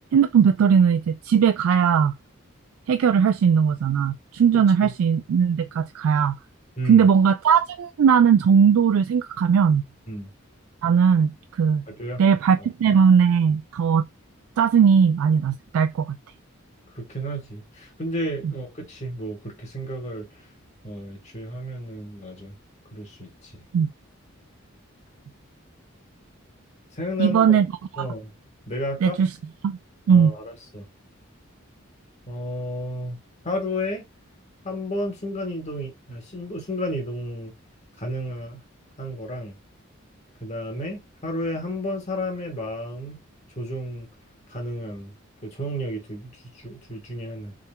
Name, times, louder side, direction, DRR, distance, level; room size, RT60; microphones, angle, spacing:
voice 1, 0.1-2.1 2.9-6.3 6.9-9.8 10.8-11.8 12.2-14.0 14.6-16.2 23.7-23.9 27.2-27.7 29.0-29.3 29.6-29.8 30.1-30.3, right 7 dB, 85° right, 0.3 m, -18 dB
voice 2, 4.5-4.9 6.8-7.1 10.1-10.3 11.9-12.2 12.6-13.0 16.9-20.5 20.8-22.6 22.9-23.6 26.9-27.6 28.0-28.3 28.7-29.2 30.1-30.9 32.3-33.2 33.4-34.0 34.6-37.5 38.0-38.6 39.0-39.6 40.4-43.2 43.5-44.1 44.5-45.1 45.4-47.5, equal, 30° left, 1.3 m, -32 dB
4.1 x 3.8 x 2.2 m
head